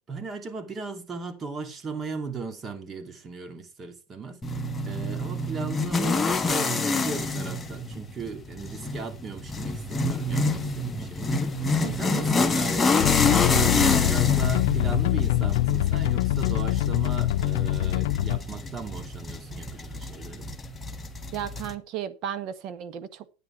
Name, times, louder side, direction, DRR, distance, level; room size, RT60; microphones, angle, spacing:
voice 1, 0.1-20.5, right 4 dB, 25° right, 2.5 m, -37 dB
sound 1, 4.4-21.7, left 3 dB, 15° left, 1.4 m, -28 dB
voice 2, 11.8-12.2 21.3-23.3, right 10 dB, 50° right, 1.5 m, -34 dB
sound 2, 13.0-18.4, left 15 dB, 75° left, 0.6 m, -24 dB
11.0 x 9.8 x 4.6 m
supercardioid pair, 125°, 0 cm